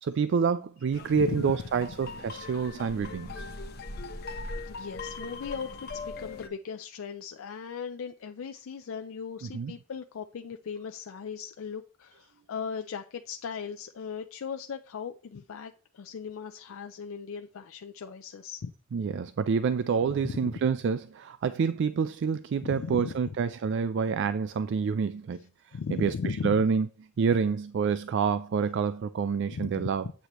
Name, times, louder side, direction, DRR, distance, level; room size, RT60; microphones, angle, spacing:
voice 1, 0.0-3.4 9.4-9.7 18.9-25.4 25.9-26.9 27.2-30.1, right 6 dB, 60° right, 0.3 m, -27 dB
sound 1, 0.9-6.5, left 3 dB, 50° left, 0.8 m, -40 dB
voice 2, 4.7-18.7 20.2-20.6 22.6-23.4 25.7-26.7 29.5-30.1, left 6 dB, 75° left, 0.4 m, -38 dB
8.1 x 8.0 x 3.0 m
head